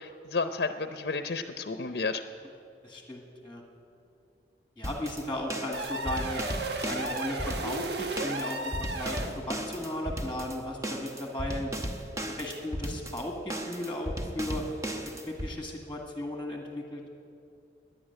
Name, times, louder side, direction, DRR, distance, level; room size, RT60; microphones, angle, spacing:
voice 1, 0.0-2.2, left 4 dB, 65° left, 8 dB, 0.6 m, -32 dB
voice 2, 2.8-3.6 4.8-6.4 6.8-11.7 12.4-14.6 15.3-17.0, left 1 dB, 10° left, 1 dB, 1.6 m, -36 dB
sound 1, 4.8-15.5, equal, 20° right, 0.9 m, -36 dB
sound 2, 5.7-9.4, right 2 dB, 75° right, 1.2 m, -34 dB
15.5 x 10.5 x 9.2 m, 2.6 s
head